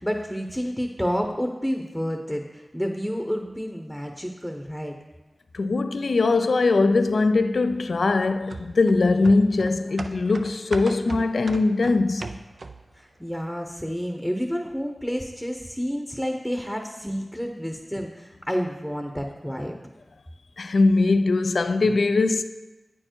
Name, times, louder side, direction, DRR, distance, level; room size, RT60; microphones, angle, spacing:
voice 1, 0.0-4.9 12.9-19.7, equal, ahead, 0.7 m, -30 dB
voice 2, 5.5-12.3 20.6-22.4, left 3 dB, 85° left, 0.3 m, -21 dB
sound 1, 8.5-13.0 13.3-13.4, right 3 dB, 80° right, 0.4 m, -38 dB
8.5 x 4.4 x 4.5 m
cardioid pair, 40°, 0 cm